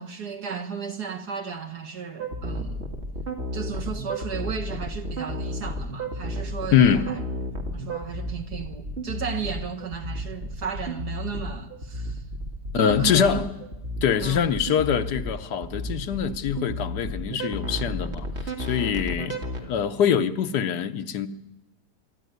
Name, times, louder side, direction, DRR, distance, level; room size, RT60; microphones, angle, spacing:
voice 1, 0.0-2.9 3.5-7.2 7.7-12.2 12.8-13.4 14.2-14.5, right 6 dB, 70° right, 2.2 m, -34 dB
sound 1, 2.2-19.6, equal, 40° right, 2.2 m, -32 dB
voice 2, 6.7-7.1 12.7-13.5 14.0-18.3 18.6-21.3, left 8 dB, 75° left, 1.4 m, -23 dB
25.0 x 12.0 x 9.4 m
omnidirectional pair, 1.8 m